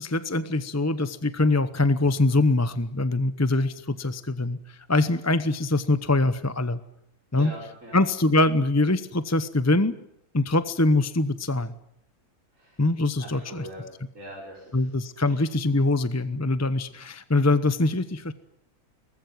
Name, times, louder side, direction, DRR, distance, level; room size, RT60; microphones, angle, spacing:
voice 1, 0.0-6.8 7.3-7.5 7.9-9.9 10.3-11.7 12.8-13.7 14.7-18.3, left 2 dB, 15° left, 13 dB, 0.7 m, -23 dB
voice 2, 7.4-8.0 12.5-12.8 13.2-13.9 14.1-14.9 15.2-15.4, equal, 55° right, -3 dB, 5.7 m, -42 dB
23.0 x 19.5 x 9.4 m, 0.74 s
omnidirectional pair, 1.6 m